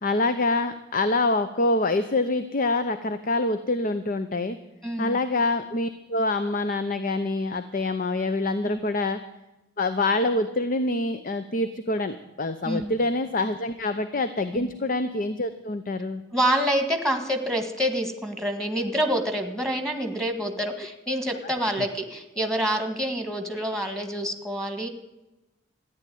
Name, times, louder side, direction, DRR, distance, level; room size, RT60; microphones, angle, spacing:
voice 1, 0.0-4.6 5.0-9.2 9.8-16.2, left 2 dB, 50° left, 10 dB, 0.8 m, -26 dB
voice 2, 4.8-5.2 8.6-8.8 12.6-12.9 14.5-14.7 16.3-24.9, equal, ahead, 7 dB, 1.7 m, -27 dB
14.0 x 10.0 x 9.3 m, 0.99 s
head